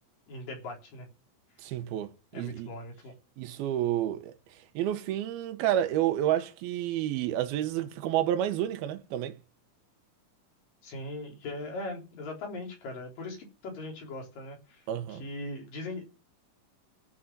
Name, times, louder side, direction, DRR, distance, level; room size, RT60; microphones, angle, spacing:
voice 1, 0.3-1.1 2.3-3.1 10.8-16.0, left 2 dB, 65° left, 5.2 m, -40 dB
voice 2, 1.6-2.7 3.4-4.4 4.8-9.4 14.9-15.2, right 12 dB, 85° right, 2.9 m, -30 dB
17.5 x 6.6 x 7.4 m
omnidirectional pair, 4.3 m